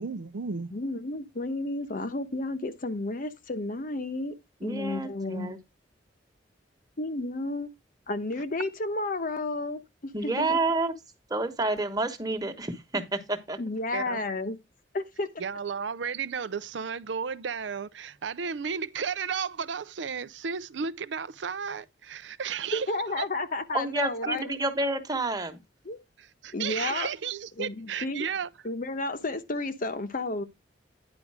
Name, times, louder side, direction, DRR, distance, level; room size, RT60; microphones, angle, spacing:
voice 1, 0.0-0.7 13.9-14.2 15.4-22.9 23.2-23.3 26.2-28.5, right 6 dB, 75° right, 0.6 m, -33 dB
voice 2, 0.7-4.3 4.6-5.5 7.0-7.7 8.1-10.6 13.6-14.5 14.9-15.3 22.7-24.5 25.8-26.0 26.5-27.1 27.6-28.3 28.6-30.4, left 2 dB, 50° left, 1.0 m, -32 dB
voice 3, 4.6-5.6 10.1-10.9 11.3-13.6 23.7-25.6, right 2 dB, 20° right, 1.3 m, -29 dB
9.9 x 5.0 x 4.8 m
head